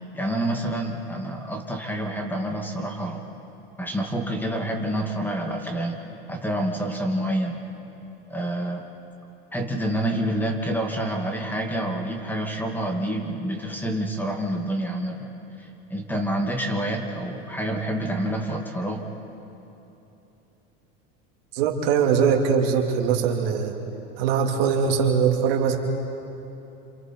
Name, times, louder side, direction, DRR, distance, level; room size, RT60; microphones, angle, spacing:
voice 1, 0.1-3.2 3.8-6.0 6.3-7.6 8.3-8.8 9.5-15.3 15.6-19.1, right 1 dB, 5° left, 2 dB, 2.3 m, -28 dB
voice 2, 21.5-23.7 24.2-25.8, right 6 dB, 80° right, 1 dB, 2.8 m, -21 dB
27.5 x 27.5 x 4.6 m, 3.0 s
supercardioid pair, 125°, 29 cm